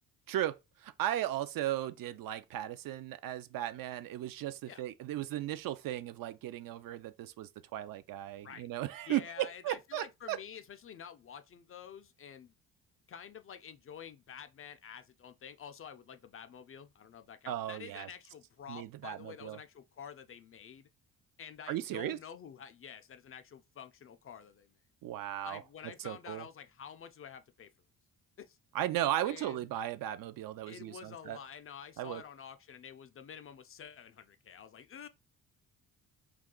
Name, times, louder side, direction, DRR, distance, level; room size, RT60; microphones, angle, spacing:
voice 1, 0.3-10.4 17.5-18.1 18.7-19.6 21.7-22.2 25.0-25.6 26.0-26.5 28.7-31.4 32.0-32.2, right 13 dB, 65° right, 0.5 m, -36 dB
voice 2, 9.1-12.5 13.1-20.9 21.4-24.7 25.4-27.7 28.4-28.6 29.2-29.6 30.7-35.1, left 7 dB, 35° left, 0.4 m, -49 dB
2.4 x 2.3 x 3.6 m
supercardioid pair, 75°, 37 cm